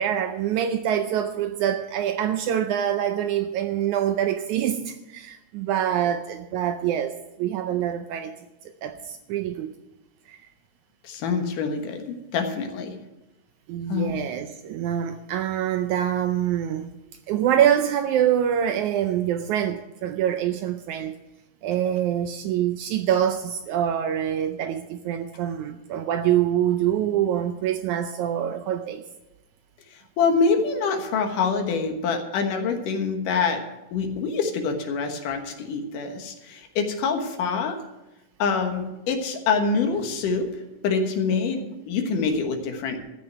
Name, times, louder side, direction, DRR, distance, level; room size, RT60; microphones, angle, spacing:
voice 1, 0.0-8.4 8.8-9.7 10.3-10.4 13.7-16.9 17.3-21.2 21.6-29.0, right 10 dB, 75° right, 1.8 m, -25 dB
voice 2, 11.0-12.9 13.9-14.2 29.9-33.6 33.9-37.8 38.4-43.0, left 5 dB, 75° left, 2.9 m, -25 dB
13.5 x 6.4 x 9.0 m
omnidirectional pair, 3.8 m